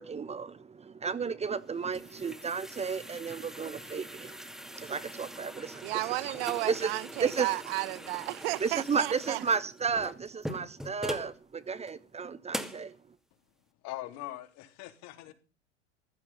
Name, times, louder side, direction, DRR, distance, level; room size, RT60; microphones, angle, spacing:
voice 1, 0.0-5.9 6.2-6.3 6.7-6.9 7.2-7.5 8.6-12.9, right 5 dB, 20° right, 1.2 m, -33 dB
sound 1, 1.5-11.4 11.9-12.0 12.5-12.9, equal, ahead, 2.4 m, -42 dB
voice 2, 5.8-9.4, right 20 dB, 60° right, 0.9 m, -33 dB
voice 3, 13.8-15.3, left 16 dB, 50° left, 3.4 m, -41 dB
15.5 x 13.5 x 5.6 m
hypercardioid pair, 90°, 34 cm